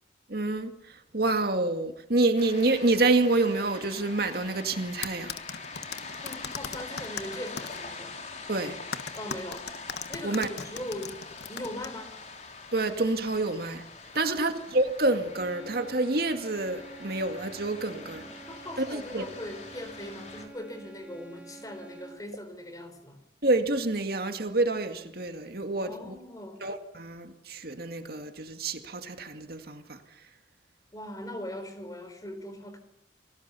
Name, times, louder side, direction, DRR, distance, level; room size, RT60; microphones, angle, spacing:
voice 1, 0.3-5.3 8.5-8.8 10.2-10.5 12.7-13.8 14.1-18.2 18.9-19.2 23.4-26.2 26.6-30.0, right 2 dB, 55° right, 2.1 m, -28 dB
sound 1, 2.4-20.5, left 4 dB, 40° left, 4.1 m, -44 dB
sound 2, 5.0-7.8 8.9-11.9, left 6 dB, 60° left, 1.3 m, -37 dB
voice 2, 6.2-8.1 9.1-9.7 10.1-11.2 11.5-12.1 14.1-14.6 17.9-23.2 25.8-26.6 30.9-32.8, left 1 dB, 20° left, 4.1 m, -40 dB
sound 3, 15.3-22.4, right 4 dB, 5° right, 5.1 m, -48 dB
30.0 x 20.5 x 7.0 m
head